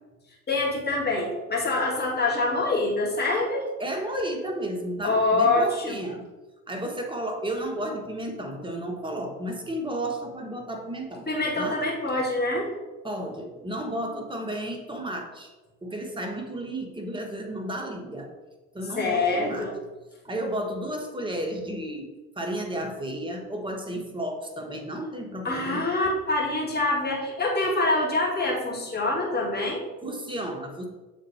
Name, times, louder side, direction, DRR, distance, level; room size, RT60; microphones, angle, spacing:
voice 1, 0.5-3.7 5.0-6.0 11.3-12.7 19.0-19.7 25.4-29.8, left 2 dB, 20° left, -4 dB, 2.2 m, -25 dB
voice 2, 3.8-6.2 6.7-11.3 11.6-11.8 13.0-15.5 15.8-18.3 18.7-19.7 20.2-22.1 22.4-25.9 30.0-30.8, right 1 dB, 10° right, 2 dB, 1.1 m, -32 dB
7.2 x 3.9 x 4.2 m, 1.2 s
hypercardioid pair, 75°, 44 cm